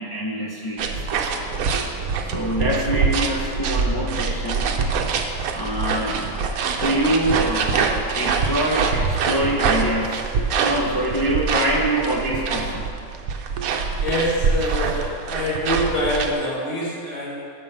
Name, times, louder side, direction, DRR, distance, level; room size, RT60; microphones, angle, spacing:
voice 1, 0.0-1.5 2.3-4.7 5.5-6.2 6.7-12.9, right 1 dB, 25° left, -3 dB, 0.5 m, -25 dB
sound 1, 0.8-16.3, right 5 dB, 85° right, 1.1 m, -24 dB
voice 2, 14.0-17.5, equal, 60° left, -6 dB, 2.2 m, -25 dB
6.7 x 5.5 x 6.5 m, 2.4 s
omnidirectional pair, 1.5 m